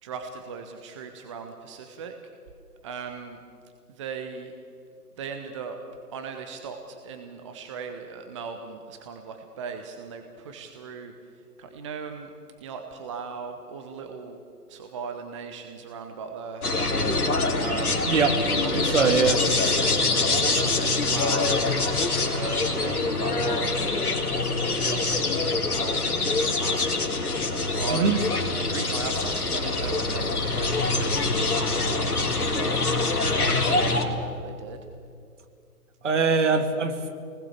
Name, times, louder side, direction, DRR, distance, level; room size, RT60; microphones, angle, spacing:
voice 1, 0.0-2.2 2.8-3.4 3.9-4.5 5.2-5.8 6.1-12.3 12.6-14.4 14.7-16.7 17.5-19.1 19.4-21.6 22.3-26.8 27.7-28.2 28.7-31.5 31.8-34.8, right 5 dB, 20° right, 5 dB, 1.0 m, -38 dB
sound 1, 16.6-34.0, left 3 dB, 65° left, 3.2 m, -25 dB
sound 2, 16.8-28.3, equal, ahead, 2.5 m, -45 dB
voice 2, 18.1-18.4 18.7-19.4 27.9-28.2 36.0-37.1, right 5 dB, 50° right, 7 dB, 2.2 m, -22 dB
27.5 x 20.0 x 7.3 m, 2.4 s
figure-of-eight pair, 135°, 47 cm